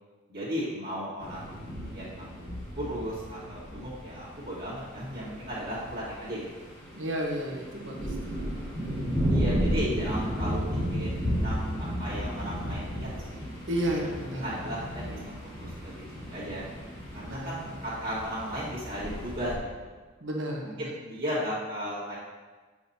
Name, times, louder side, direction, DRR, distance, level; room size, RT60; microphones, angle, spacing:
voice 1, 0.3-6.7 8.3-8.8 9.3-10.6 10.9-13.5 14.0-15.2 15.6-16.7 17.1-20.0 20.6-22.2, equal, 45° right, -9 dB, 1.9 m, -36 dB
sound 1, 1.2-19.6, equal, 20° left, 1.7 m, -34 dB
voice 2, 7.0-8.4 8.9-9.2 13.7-14.5 17.3-17.8 20.2-20.9, equal, 65° right, -1 dB, 1.2 m, -33 dB
7.9 x 6.0 x 2.8 m, 1.3 s
head